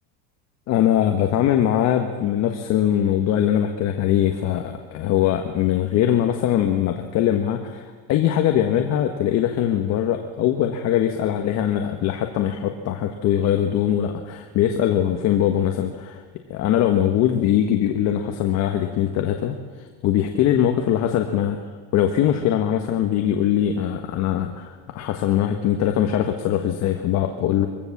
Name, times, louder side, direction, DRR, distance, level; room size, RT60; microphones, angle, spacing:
voice 1, 0.7-16.2 16.5-19.5 20.0-21.6 21.9-27.7, left 10 dB, 50° left, 5 dB, 1.5 m, -21 dB
23.0 x 16.0 x 7.3 m, 1.5 s
cardioid pair, 140°, 33 cm